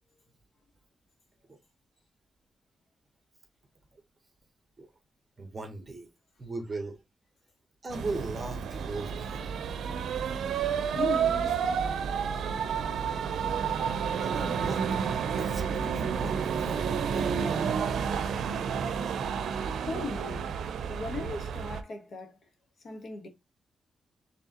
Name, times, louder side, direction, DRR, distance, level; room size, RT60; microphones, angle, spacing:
voice 1, 5.4-6.1 6.4-7.0 7.8-9.4 14.2-14.9 15.3-17.3, right 2 dB, 25° right, 1.1 m, -38 dB
sound 1, 7.9-21.8, right 7 dB, 85° right, 0.5 m, -30 dB
voice 2, 10.9-11.6 19.8-20.5 20.9-22.4 22.8-23.3, left 4 dB, 55° left, 1.3 m, -37 dB
4.7 x 3.4 x 2.9 m
wide cardioid pair, 155°, 0 cm